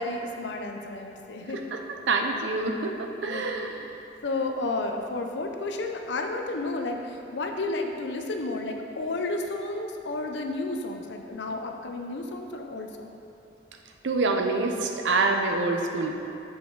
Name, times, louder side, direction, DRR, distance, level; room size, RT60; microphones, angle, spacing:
voice 1, 0.0-1.7 3.2-3.7 4.2-13.2, left 2 dB, 70° left, 4 dB, 0.6 m, -32 dB
voice 2, 2.1-3.9 14.0-16.2, right 3 dB, 75° right, 4 dB, 0.6 m, -26 dB
6.9 x 5.1 x 3.9 m, 2.8 s
head